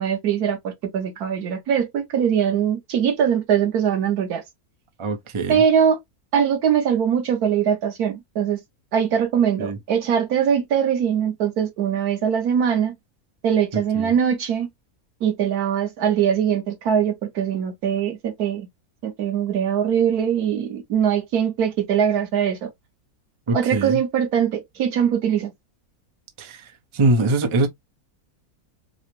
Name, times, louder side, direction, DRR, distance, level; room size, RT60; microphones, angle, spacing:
voice 1, 0.0-4.4 5.5-6.0 6.3-8.6 8.9-12.9 13.4-14.7 15.2-18.7 19.0-22.7 23.5-25.5, right 8 dB, 90° right, 1.5 m, -22 dB
voice 2, 5.0-5.6 9.6-9.8 14.0-14.1 23.5-24.0 26.4-26.6 26.9-27.7, right 2 dB, 30° right, 0.6 m, -22 dB
4.8 x 2.1 x 2.9 m
omnidirectional pair, 1.6 m